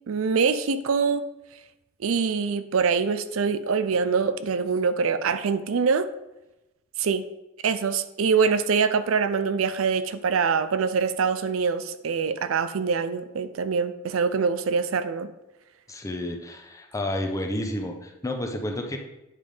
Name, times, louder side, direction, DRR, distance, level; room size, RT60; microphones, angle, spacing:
voice 1, 0.1-1.2 2.0-6.1 7.0-7.2 7.6-15.3, right 5 dB, 85° right, 12 dB, 0.5 m, -24 dB
voice 2, 15.9-19.0, left 1 dB, 15° left, 3 dB, 0.8 m, -30 dB
9.2 x 3.6 x 5.0 m, 0.97 s
head